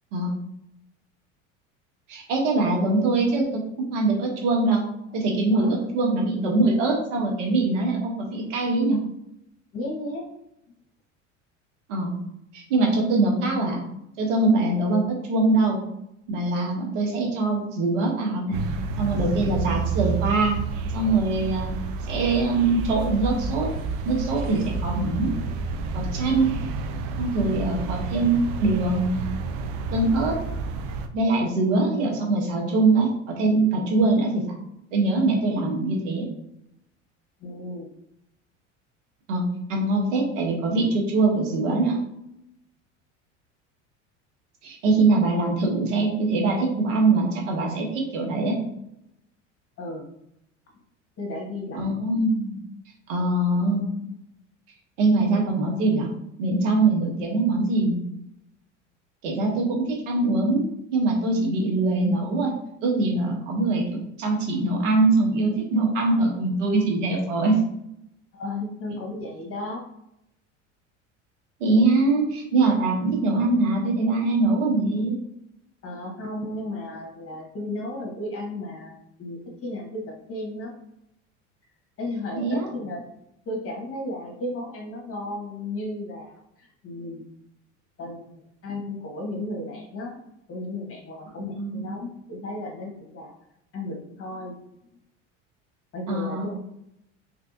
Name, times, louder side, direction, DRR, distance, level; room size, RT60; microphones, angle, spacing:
voice 1, 2.1-3.6 3.9-4.8 5.1-9.0 11.9-12.1 12.5-13.8 14.2-15.8 16.3-18.6 19.0-20.6 20.9-21.7 22.1-23.7 24.0-25.3 25.9-26.5 27.2-29.2 29.9-30.4 31.1-34.6 34.9-36.3 39.3-39.4 39.7-42.0 44.6-48.6 51.7-52.6 53.1-53.9 55.0-56.1 56.4-58.0 59.2-60.6 60.9-62.5 62.8-67.6 71.6-75.2 82.4-82.7 91.6-91.9 96.1-96.5, right 2 dB, 80° right, 0 dB, 1.2 m, -23 dB
voice 2, 5.5-5.8 9.7-10.2 37.4-37.9 49.8-50.1 51.2-51.9 68.3-69.8 75.8-80.8 82.0-83.0 83.4-87.2 88.0-88.3 88.6-90.2 90.5-93.3 93.7-94.5 95.9-96.6, left 1 dB, 35° left, 0 dB, 1.4 m, -34 dB
sound 1, 18.5-31.1, right 4 dB, 60° right, 0.6 m, -30 dB
3.4 x 3.2 x 2.7 m, 0.80 s
hypercardioid pair, 85°, 37 cm